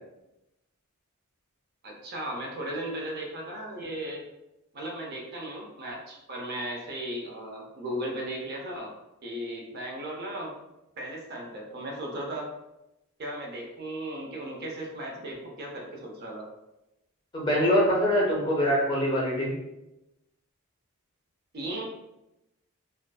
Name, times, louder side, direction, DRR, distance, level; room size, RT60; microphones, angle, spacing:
voice 1, 1.8-4.3 4.7-8.9 9.2-10.5 11.0-12.5 13.2-16.5 21.5-21.8, right 1 dB, 45° right, -1 dB, 0.5 m, -36 dB
voice 2, 17.3-19.5, equal, 20° left, -3 dB, 0.5 m, -24 dB
2.4 x 2.3 x 2.2 m, 0.92 s
head